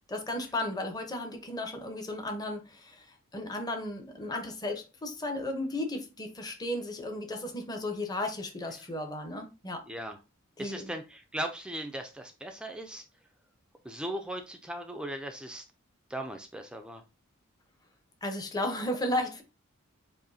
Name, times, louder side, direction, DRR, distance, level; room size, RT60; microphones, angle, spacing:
voice 1, 0.1-9.8 10.6-10.9 18.2-19.4, left 1 dB, 20° left, 0.8 m, -34 dB
voice 2, 9.9-10.2 10.6-13.0 13.8-15.6 16.1-17.0, right 1 dB, 5° right, 0.4 m, -38 dB
7.6 x 2.7 x 2.6 m
head